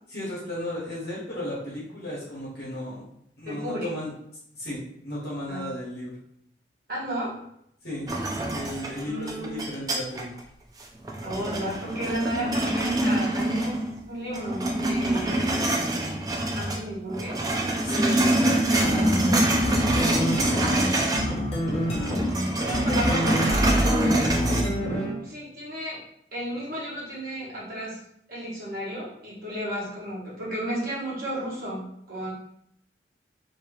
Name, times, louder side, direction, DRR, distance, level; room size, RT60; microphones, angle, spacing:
voice 1, 0.1-3.0 3.4-4.1 4.5-6.1 7.8-8.1 8.5-10.3 17.8-21.0, left 1 dB, 60° left, -7 dB, 1.2 m, -34 dB
voice 2, 3.4-3.9 5.5-5.6 6.9-7.4 9.0-9.6 11.2-16.0 16.5-17.5 17.9-18.4 21.7-26.0 26.3-28.0 28.3-32.3, equal, 50° right, -7 dB, 1.4 m, -33 dB
sound 1, 8.1-10.4 10.8-14.0 14.3-16.8 17.1-21.4 21.6-24.6, right 1 dB, 20° right, 0.4 m, -25 dB
sound 2, 18.8-25.3, equal, 35° left, 0.8 m, -27 dB
3.0 x 2.7 x 3.1 m, 0.74 s
head